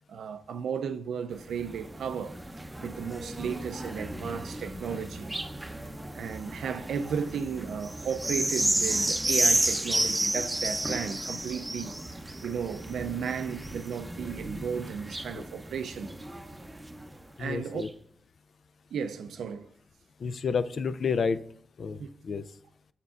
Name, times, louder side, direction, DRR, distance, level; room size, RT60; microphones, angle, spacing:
voice 1, 0.1-2.4 2.8-5.3 6.1-11.9 12.4-16.1 17.4-17.8 18.9-19.7 22.0-22.1, right 7 dB, 85° right, 0.4 m, -34 dB
sound 1, 1.3-17.2 17.8-17.9, right 1 dB, 15° right, 0.6 m, -32 dB
voice 2, 17.4-17.9 20.2-21.4 21.8-22.4, left 5 dB, 65° left, 0.3 m, -30 dB
7.1 x 6.6 x 2.4 m
cardioid pair, 50°, 0 cm